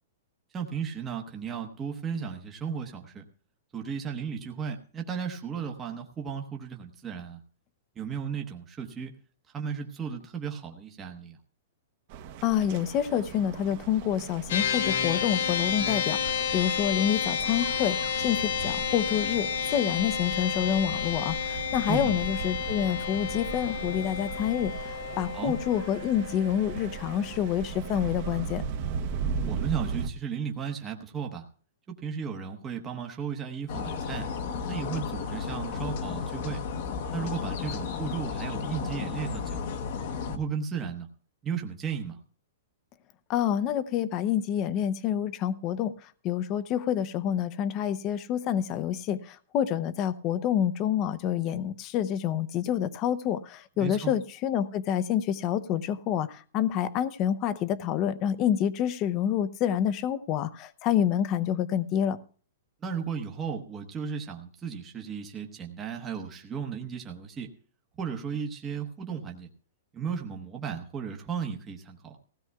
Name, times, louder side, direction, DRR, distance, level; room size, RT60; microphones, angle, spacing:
voice 1, 0.5-3.2 3.7-7.4 8.0-9.1 9.5-11.4 21.9-22.1 25.3-25.5 29.4-31.4 32.0-34.3 34.7-36.6 37.1-39.7 40.3-41.1 41.4-42.2 53.8-54.1 62.8-67.5 68.0-69.5 69.9-72.2, right 6 dB, 15° right, 2 dB, 1.0 m, -35 dB
sound 1, 12.1-30.1, right 6 dB, 40° right, 1.0 m, -38 dB
voice 2, 12.4-28.6 43.3-62.2, left 10 dB, 30° left, 14 dB, 0.7 m, -28 dB
sound 2, 14.5-28.0, left 8 dB, 65° left, 1.6 m, -31 dB
sound 3, 33.7-40.4, left 5 dB, 50° left, 1.0 m, -33 dB
20.0 x 16.0 x 2.3 m, 0.44 s
hypercardioid pair, 165°, 0 cm